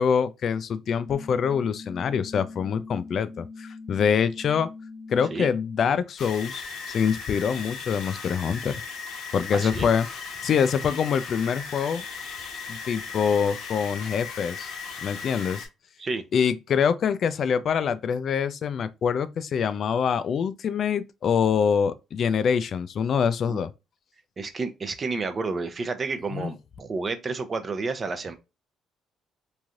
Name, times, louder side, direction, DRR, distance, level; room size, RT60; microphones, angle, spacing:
voice 1, 0.0-4.7 5.1-8.7 9.3-10.1 10.4-12.0 12.7-14.7 15.0-15.7 16.3-23.7 26.3-26.5, left 7 dB, 50° left, 0.3 m, -25 dB
sound 1, 1.0-5.9, left 4 dB, 15° left, 0.9 m, -42 dB
sound 2, 6.2-15.7, left 5 dB, 75° left, 0.9 m, -37 dB
voice 2, 9.5-9.9 16.0-16.2 23.5-23.6 24.4-28.4, right 4 dB, 35° right, 0.5 m, -30 dB
3.1 x 2.6 x 2.4 m
cardioid pair, 110°, 0 cm